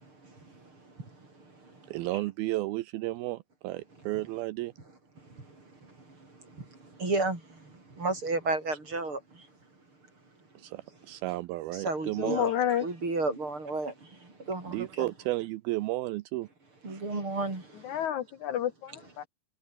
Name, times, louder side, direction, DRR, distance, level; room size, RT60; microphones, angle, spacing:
voice 1, 0.0-2.3 3.9-4.1 5.2-9.5 10.9-11.0 11.7-12.5 12.8-15.1 16.8-18.0, right 3 dB, 30° right, 7.2 m, -34 dB
voice 2, 1.9-4.7 10.6-12.5 14.7-16.5 16.9-17.0, right 18 dB, 85° right, 2.3 m, -33 dB
voice 3, 12.2-12.9 17.8-19.2, left 11 dB, 75° left, 1.8 m, -30 dB
omnidirectional pair, 5.0 m